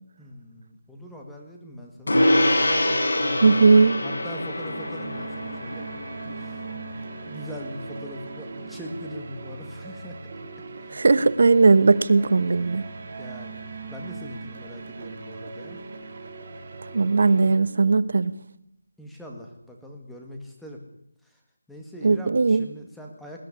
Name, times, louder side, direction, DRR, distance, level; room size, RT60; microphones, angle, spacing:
voice 1, 0.2-2.2 3.1-3.6 4.0-5.8 6.3-6.7 7.2-10.2 10.8-11.0 13.2-15.8 19.0-20.8 21.2-21.4 21.7-23.4, equal, ahead, 0 dB, 1.9 m, -41 dB
Gong, 2.1-11.8, left 1 dB, 65° left, 7.9 m, -27 dB
voice 2, 3.4-4.0 10.9-12.8 16.9-18.3 22.0-22.6, right 4 dB, 50° right, 15 dB, 1.1 m, -18 dB
sound 1, 3.5-17.6, right 4 dB, 30° right, 2.4 m, -39 dB
20.0 x 14.0 x 9.9 m, 0.80 s
figure-of-eight pair, 175°, 0 cm